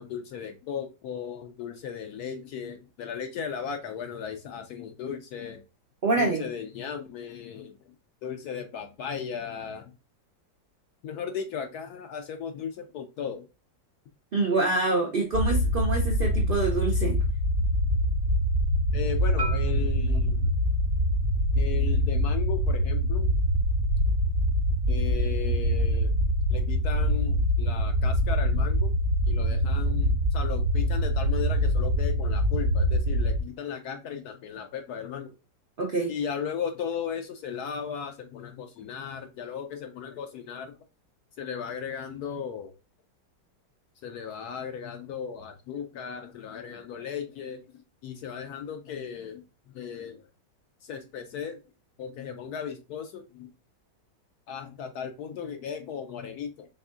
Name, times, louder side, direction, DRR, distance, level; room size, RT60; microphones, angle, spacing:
voice 1, 0.0-5.6 6.2-7.7 8.2-9.9 11.0-13.4 18.9-20.5 21.5-23.3 24.9-26.1 26.5-28.9 29.3-35.3 36.1-40.7 41.4-42.7 44.0-47.6 48.0-49.4 49.7-50.2 50.8-51.6 52.0-53.5 54.5-56.7, left 7 dB, 70° left, 6 dB, 0.9 m, -36 dB
voice 2, 6.0-6.5 14.3-17.2 35.8-36.1, right 3 dB, 80° right, 0 dB, 0.5 m, -26 dB
sound 1, 15.3-33.4, equal, 55° right, 1.2 m, -24 dB
Marimba xylophone, 19.4-23.6, right 6 dB, 35° right, 0.7 m, -41 dB
4.7 x 3.5 x 2.4 m, 0.30 s
omnidirectional pair, 2.0 m